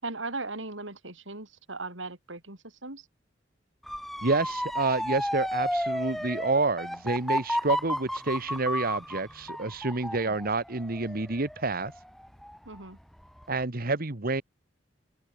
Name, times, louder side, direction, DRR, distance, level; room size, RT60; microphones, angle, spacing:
voice 1, 0.0-3.1 12.7-13.0, right 3 dB, 90° right, 6.0 m, -38 dB
Motor vehicle (road) / Siren, 3.9-12.8 13.2-13.6, equal, ahead, 0.7 m, -32 dB
voice 2, 4.2-11.9 13.5-14.4, right 3 dB, 50° right, 1.6 m, -28 dB
open air
head